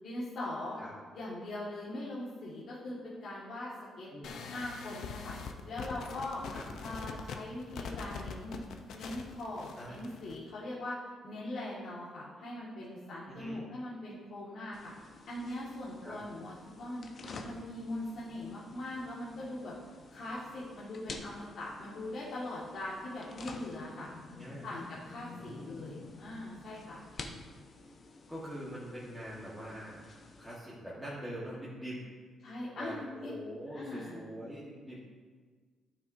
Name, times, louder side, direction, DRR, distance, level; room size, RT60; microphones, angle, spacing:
voice 1, 0.0-0.8 1.1-4.1 4.5-5.3 5.6-6.4 6.8-8.6 8.9-11.0 11.2-14.9 15.3-17.1 17.4-19.7 20.1-24.1 24.6-27.0 32.4-33.3 33.7-34.2, left 1 dB, 50° left, -9 dB, 1.8 m, -41 dB
sound 1, 4.2-10.4, left 5 dB, 70° left, 0.7 m, -43 dB
voice 2, 13.3-13.6 16.0-16.2 24.4-24.7 25.3-26.0 28.3-30.0 30.4-32.0 32.7-35.0, equal, ahead, -9 dB, 1.4 m, -43 dB
sound 2, 14.7-30.6, left 3 dB, 35° left, 0.7 m, -50 dB
13.0 x 5.9 x 2.7 m, 1.5 s
cardioid pair, 155°, 0 cm